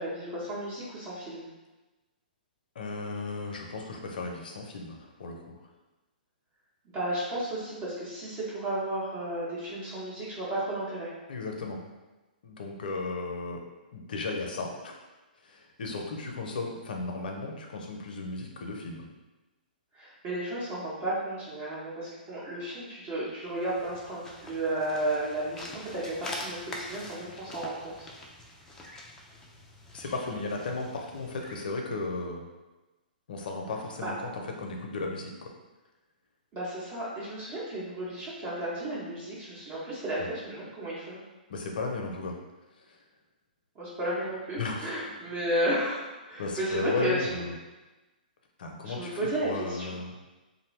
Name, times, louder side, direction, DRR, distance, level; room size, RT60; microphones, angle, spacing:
voice 1, 0.0-1.5 6.8-11.1 19.9-28.1 34.0-34.1 36.5-41.2 43.7-47.4 48.8-49.9, right 1 dB, 35° right, -8 dB, 0.8 m, -33 dB
voice 2, 2.8-5.6 11.3-11.8 12.4-13.6 13.9-15.0 15.4-19.1 29.9-32.5 33.3-35.5 40.2-40.3 41.5-42.4 42.8-43.0 44.6-44.9 46.4-47.5 48.6-50.1, left 3 dB, 70° left, 1 dB, 0.5 m, -35 dB
sound 1, 23.4-31.7, left 1 dB, 10° left, 0.4 m, -44 dB
2.5 x 2.1 x 3.1 m, 1.1 s
hypercardioid pair, 130°, 5 cm